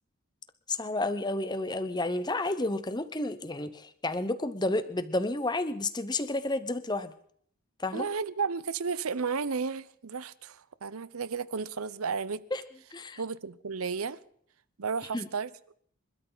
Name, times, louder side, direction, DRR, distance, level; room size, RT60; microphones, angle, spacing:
voice 1, 0.7-7.1 7.8-8.1 12.5-12.6 12.9-13.2 15.1-15.3, left 2 dB, 20° left, 0.9 m, -31 dB
voice 2, 7.9-12.4 13.2-14.2 14.8-15.7, right 5 dB, 90° right, 0.8 m, -33 dB
27.0 x 13.0 x 4.0 m
head